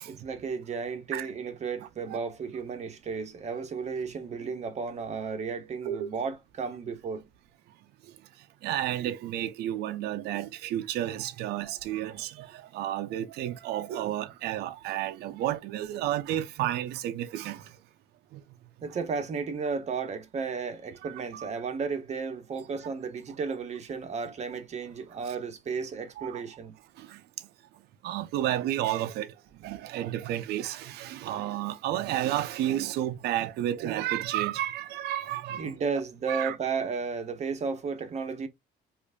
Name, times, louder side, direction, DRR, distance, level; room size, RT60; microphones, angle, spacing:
voice 1, 0.0-7.2 18.8-26.7 35.6-38.5, right 5 dB, 40° right, 1.0 m, -33 dB
voice 2, 8.6-17.6 18.3-18.4 21.0-21.5 25.2-25.4 26.2-26.4 27.0-27.2 28.0-29.3 29.6-35.8 36.3-36.6, right 12 dB, 75° right, 0.5 m, -31 dB
4.8 x 2.6 x 2.2 m
cardioid pair, 110°, 17 cm